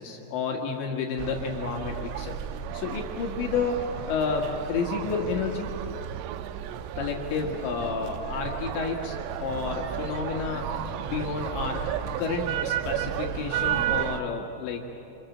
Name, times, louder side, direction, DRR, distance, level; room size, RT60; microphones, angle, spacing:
voice 1, 0.0-2.4 2.7-3.8 4.1-5.7 7.0-10.7 11.0-11.8 12.2-14.8, left 5 dB, 70° left, 0 dB, 3.8 m, -30 dB
sound 1, 1.2-14.2, right 10 dB, 85° right, 3.3 m, -33 dB
29.5 x 27.0 x 7.3 m, 2.9 s
omnidirectional pair, 5.7 m